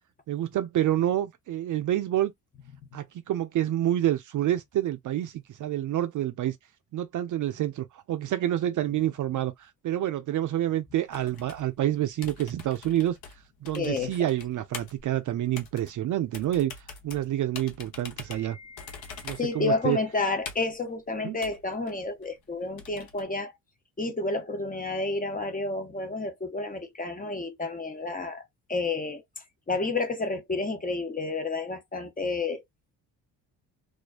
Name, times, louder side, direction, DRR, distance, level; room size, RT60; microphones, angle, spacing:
voice 1, 0.3-2.3 2.9-6.6 6.9-13.2 13.6-16.7 17.0-18.6 19.2-20.0 21.2-21.4, right 12 dB, 50° right, 0.4 m, -28 dB
sound 1, 11.1-23.2, left 5 dB, 55° left, 0.8 m, -45 dB
voice 2, 13.7-14.3 18.3-23.6 24.0-28.4 28.7-29.2 29.7-32.6, left 3 dB, 20° left, 0.7 m, -30 dB
2.4 x 2.1 x 2.4 m
supercardioid pair, 65°, 42 cm